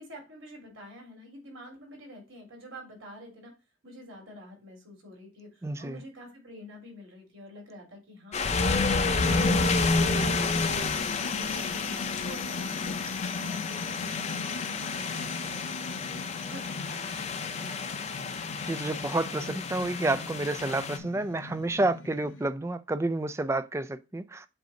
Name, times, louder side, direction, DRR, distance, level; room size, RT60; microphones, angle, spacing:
voice 1, 0.0-3.5 3.8-17.8, left 1 dB, 75° right, 3.5 m, -47 dB
voice 2, 5.6-6.0 18.7-24.5, right 2 dB, 15° right, 0.3 m, -30 dB
sound 1, 8.3-21.0, left 3 dB, 35° left, 0.6 m, -30 dB
sound 2, 9.2-22.5, left 4 dB, 75° left, 0.6 m, -39 dB
7.8 x 2.7 x 5.1 m
head